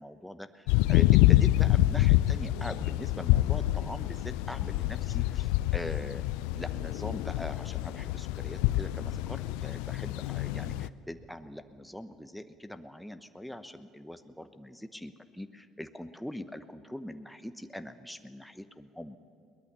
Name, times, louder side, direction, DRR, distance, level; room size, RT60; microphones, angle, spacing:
voice 1, 0.0-6.2 6.6-19.2, left 1 dB, 5° left, 9 dB, 1.0 m, -42 dB
sound 1, 0.7-10.9, left 16 dB, 70° left, 0.4 m, -26 dB
22.0 x 19.0 x 6.9 m, 2.4 s
hypercardioid pair, 60°, 0 cm